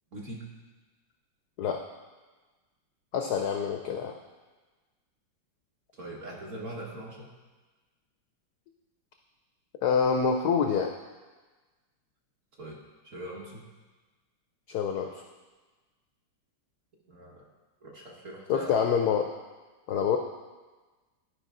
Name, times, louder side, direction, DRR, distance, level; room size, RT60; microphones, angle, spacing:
voice 1, 0.1-0.5 5.9-7.3 12.6-12.8 13.0-13.7 17.1-17.4 17.8-18.8, right 1 dB, 45° right, -3 dB, 1.3 m, -41 dB
voice 2, 3.1-4.1 9.8-10.9 14.7-15.2 18.5-19.3 19.9-20.2, left 6 dB, 80° left, 4 dB, 0.9 m, -26 dB
11.5 x 5.1 x 3.7 m, 1.3 s
omnidirectional pair, 2.2 m